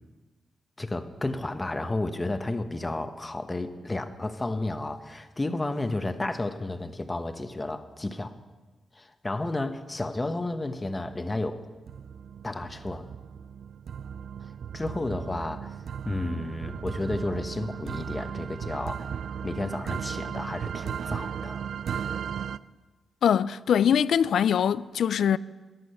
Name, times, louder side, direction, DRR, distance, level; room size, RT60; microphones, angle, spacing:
voice 1, 0.8-8.3 8.9-11.6 12.4-13.1 14.7-15.8 16.0-19.1 19.4-21.7, left 2 dB, 20° left, 1.0 m, -32 dB
sound 1, 10.9-11.4 11.9-22.6, right 8 dB, 75° right, 0.3 m, -36 dB
voice 2, 23.2-25.4, left 8 dB, 80° left, 0.4 m, -22 dB
14.5 x 11.0 x 5.6 m
cardioid pair, 95°, 0 cm